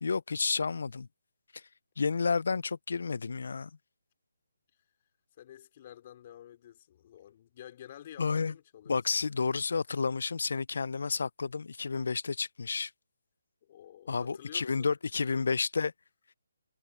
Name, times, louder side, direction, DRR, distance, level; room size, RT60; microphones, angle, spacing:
voice 1, 0.0-1.1 1.5-1.6 2.0-3.7 8.2-8.5 8.9-12.9 14.1-15.9, left 4 dB, 70° left, 0.4 m, -31 dB
voice 2, 5.4-9.0 13.6-14.9 15.3-15.5, left 11 dB, 35° left, 3.9 m, -50 dB
hypercardioid pair, 160°, 0 cm